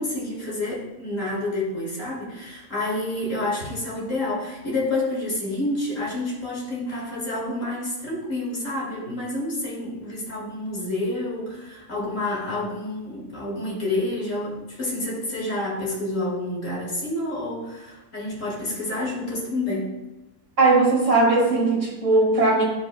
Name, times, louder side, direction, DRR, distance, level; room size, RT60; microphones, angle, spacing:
voice 1, 0.0-19.9, left 2 dB, 65° left, -5 dB, 2.3 m, -29 dB
voice 2, 20.6-22.6, right 3 dB, 60° right, -2 dB, 2.2 m, -18 dB
14.0 x 5.1 x 2.2 m, 1.1 s
omnidirectional pair, 1.4 m